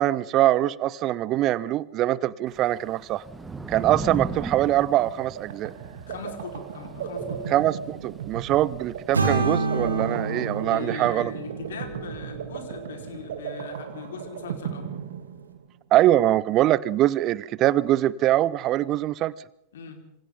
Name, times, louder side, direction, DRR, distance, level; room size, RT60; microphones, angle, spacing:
voice 1, 0.0-3.2 3.7-5.7 7.5-11.3 15.9-19.3, right 14 dB, 35° right, 0.9 m, -23 dB
Thunder / Rain, 2.5-10.8, right 3 dB, 10° right, 2.0 m, -39 dB
sound 1, 4.9-15.8, right 8 dB, 60° right, 2.6 m, -36 dB
voice 2, 6.0-7.5 10.7-14.9 19.7-20.0, left 6 dB, 60° left, 4.4 m, -40 dB
sound 2, 9.1-13.2, right 3 dB, 75° right, 4.3 m, -28 dB
27.0 x 26.0 x 3.8 m
figure-of-eight pair, 90°, 0 cm